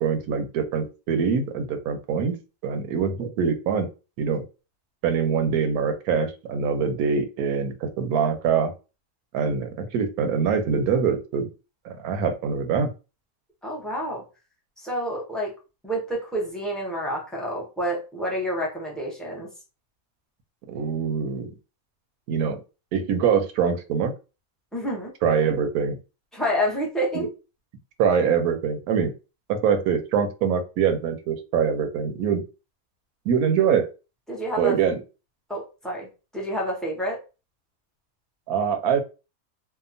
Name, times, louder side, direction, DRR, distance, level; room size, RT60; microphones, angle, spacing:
voice 1, 0.0-2.4 2.6-3.9 4.2-4.4 5.0-8.7 9.3-11.5 11.8-12.9 20.7-21.5 22.3-22.6 22.9-24.1 25.2-26.0 27.1-27.3 28.0-29.1 29.5-32.4 33.3-33.9 34.6-35.0 38.5-39.0, right 6 dB, 85° right, 7 dB, 1.1 m, -24 dB
voice 2, 13.6-14.2 14.8-15.5 15.8-19.5 24.7-25.1 26.3-27.3 34.3-34.7 35.5-36.1 36.3-37.2, equal, ahead, -3 dB, 0.3 m, -28 dB
2.8 x 2.2 x 2.5 m, 0.31 s
omnidirectional pair, 1.5 m